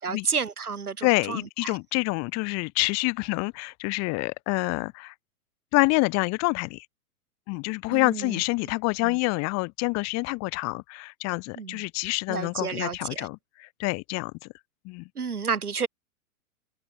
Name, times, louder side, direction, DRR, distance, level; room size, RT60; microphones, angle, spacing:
voice 1, 0.0-1.8 7.9-8.4 9.0-9.2 11.6-11.8 12.3-13.3 15.2-15.9, right 5 dB, 90° right, 4.0 m, -31 dB
voice 2, 1.0-5.1 5.7-6.9 7.5-14.3 14.8-15.1, left 26 dB, 35° left, 2.8 m, -27 dB
hypercardioid pair, 120°, 43 cm